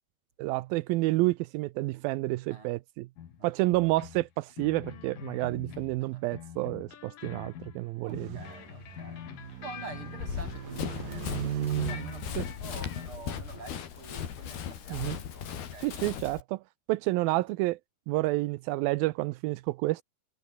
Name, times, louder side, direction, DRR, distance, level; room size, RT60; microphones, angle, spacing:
voice 1, 0.4-3.1 3.4-8.4 12.4-12.5 14.9-15.2 15.8-16.6 16.9-17.8 18.1-20.0, right 20 dB, 85° right, 2.4 m, -29 dB
sound 1, 3.2-6.0 6.3-11.5 11.8-13.1, left 9 dB, 65° left, 3.6 m, -45 dB
voice 2, 8.0-9.3 9.6-16.0, right 3 dB, 35° right, 6.5 m, -48 dB
sound 2, 8.1-13.6, right 10 dB, 65° right, 3.7 m, -38 dB
Run, 10.2-16.4, left 9 dB, 85° left, 4.7 m, -37 dB
omnidirectional pair, 4.3 m